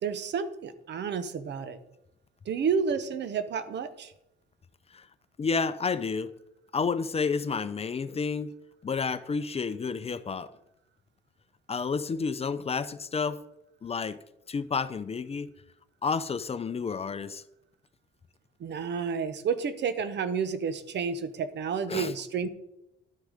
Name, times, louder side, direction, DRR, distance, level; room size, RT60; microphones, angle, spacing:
voice 1, 0.0-1.8 2.5-4.1 18.6-22.5, right 6 dB, 60° right, 0.9 m, -30 dB
voice 2, 5.4-6.3 6.7-8.5 8.8-10.5 11.7-13.4 13.8-14.2 14.5-15.5 16.0-17.4 21.9-22.1, left 5 dB, 30° left, 0.5 m, -30 dB
11.5 x 6.2 x 5.0 m
cardioid pair, 90°, 20 cm